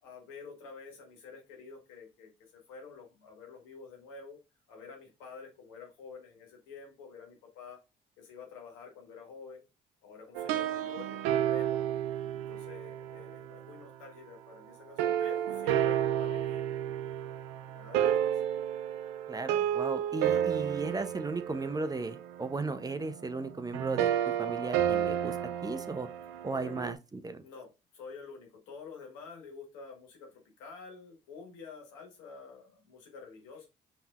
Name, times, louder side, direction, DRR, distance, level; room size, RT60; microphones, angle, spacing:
voice 1, 0.0-4.4 4.7-7.8 8.2-9.6 10.0-11.8 12.5-16.6 17.6-18.4 26.5-26.7 27.4-33.7, left 5 dB, 90° left, 1.4 m, -49 dB
sound 1, 10.3-13.7 15.0-26.9, right 10 dB, 90° right, 0.4 m, -31 dB
voice 2, 19.3-25.4 25.6-26.1 26.4-27.4, right 3 dB, 20° right, 0.5 m, -36 dB
5.3 x 2.9 x 2.4 m
supercardioid pair, 60°, 19 cm